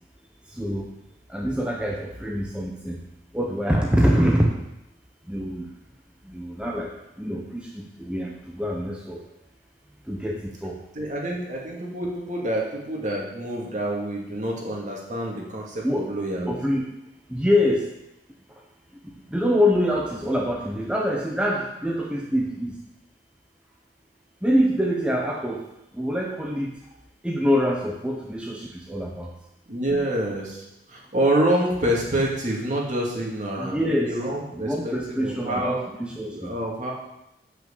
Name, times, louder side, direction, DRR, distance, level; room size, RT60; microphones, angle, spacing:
voice 1, 0.5-0.9 1.3-3.0 3.3-4.5 5.3-5.7 6.2-6.9 7.2-9.2 10.1-10.8 15.8-16.1 16.5-16.9 17.3-17.9 19.3-22.7 24.4-25.6 25.9-26.7 27.2-29.3 33.6-34.2 34.5-36.5, equal, 5° right, -1 dB, 0.9 m, -25 dB
voice 2, 10.9-16.5 29.7-35.8 36.3-36.9, right 1 dB, 45° right, -2 dB, 2.4 m, -27 dB
8.0 x 6.3 x 7.0 m, 0.88 s
head